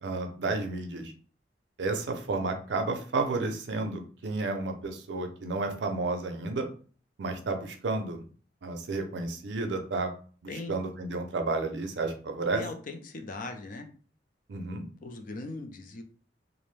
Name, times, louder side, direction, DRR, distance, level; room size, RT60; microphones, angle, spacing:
voice 1, 0.0-1.1 1.8-6.7 7.2-8.2 8.6-10.1 10.4-12.6 14.5-14.8, right 3 dB, 70° right, 5 dB, 0.5 m, -31 dB
voice 2, 10.5-10.8 12.5-13.9 15.0-16.0, left 3 dB, 50° left, 5 dB, 0.4 m, -39 dB
2.5 x 2.1 x 3.1 m, 0.41 s
head